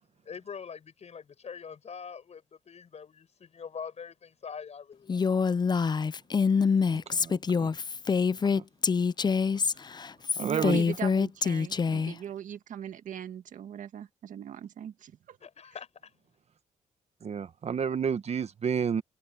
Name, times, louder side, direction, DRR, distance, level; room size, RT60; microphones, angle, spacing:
voice 1, 0.2-5.2 15.4-16.2, left 6 dB, 55° left, 6.8 m, -43 dB
Female speech woman speaking, 5.1-12.1, left 5 dB, 35° left, 0.5 m, -26 dB
voice 2, 6.9-7.7 8.5-8.6 9.6-9.7 10.4-10.8 17.2-19.0, right 7 dB, 55° right, 1.2 m, -31 dB
voice 3, 10.4-15.4, right 9 dB, 80° right, 1.7 m, -40 dB
cardioid pair, 80°, 13 cm